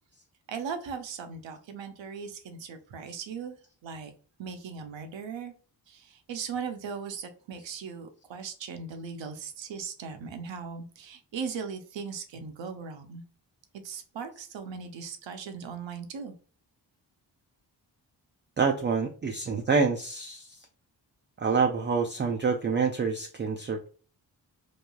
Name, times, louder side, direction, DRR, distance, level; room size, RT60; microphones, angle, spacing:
voice 1, 0.5-3.6 3.8-4.1 4.4-5.5 5.9-13.2 13.8-16.3, right 6 dB, 75° right, 7 dB, 0.7 m, -38 dB
voice 2, 18.6-20.5 21.4-23.9, right 5 dB, 25° right, 3 dB, 0.3 m, -27 dB
3.1 x 2.3 x 2.2 m, 0.39 s
cardioid pair, 45°, 45 cm